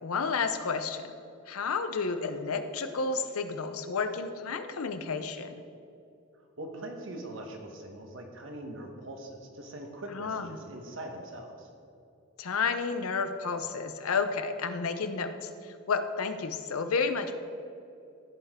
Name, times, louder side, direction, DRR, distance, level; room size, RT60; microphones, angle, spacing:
voice 1, 0.0-1.1 1.5-5.6 10.1-10.5 12.4-17.4, left 4 dB, 85° left, 9 dB, 0.7 m, -31 dB
voice 2, 6.3-11.7, right 1 dB, 65° right, 3 dB, 1.2 m, -42 dB
15.5 x 5.5 x 3.6 m, 2.7 s
head